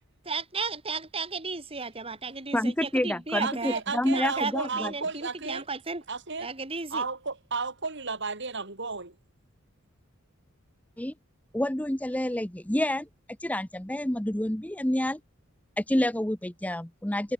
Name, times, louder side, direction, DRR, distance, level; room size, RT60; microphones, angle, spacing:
voice 1, 0.3-3.8 4.1-6.0 6.4-7.0, right 4 dB, 25° right, 3.5 m, -34 dB
voice 2, 2.5-4.9 11.0-11.1 11.5-13.1 13.4-15.2 15.8-17.3, left 1 dB, 5° left, 0.8 m, -28 dB
voice 3, 3.4-5.6 6.1-6.5 6.9-9.2, right 4 dB, 60° right, 5.5 m, -33 dB
head